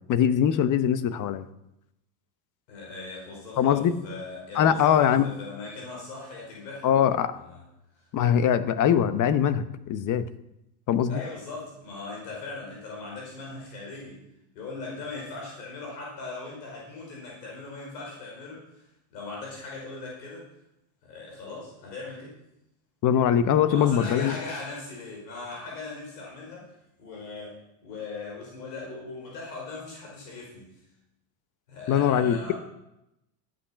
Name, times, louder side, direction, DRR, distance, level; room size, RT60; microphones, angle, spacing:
voice 1, 0.1-1.4 3.6-3.9 4.5-5.3 6.8-7.3 8.1-9.6 9.9-10.3 10.9-11.2 23.0-24.3 31.9-32.5, left 9 dB, 40° left, 12 dB, 1.0 m, -22 dB
voice 2, 2.7-6.9 7.4-7.6 8.0-8.1 11.1-14.2 14.5-20.4 21.0-22.3 23.7-26.7 27.0-30.8 31.7-32.5, left 3 dB, 85° left, -3 dB, 5.2 m, -39 dB
12.5 x 9.1 x 5.9 m, 0.85 s
supercardioid pair, 110°, 49 cm